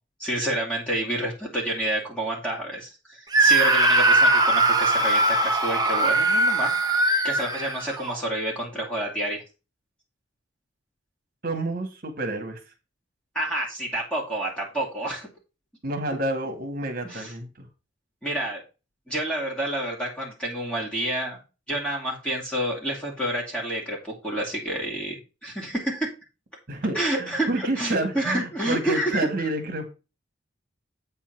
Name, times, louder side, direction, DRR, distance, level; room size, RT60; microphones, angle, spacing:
voice 1, 0.2-6.9 7.2-9.4 13.3-15.3 17.0-17.3 18.2-18.6 19.1-21.4 21.7-25.1 25.4-26.1 26.9-29.3, right 1 dB, 5° left, -4 dB, 2.7 m, -29 dB
Screaming, 3.3-8.2, right 2 dB, 20° right, 1.1 m, -20 dB
voice 2, 11.4-12.6 15.8-17.7 26.7-29.9, right 2 dB, 50° right, 5 dB, 2.0 m, -29 dB
8.6 x 4.5 x 6.0 m, 0.29 s
head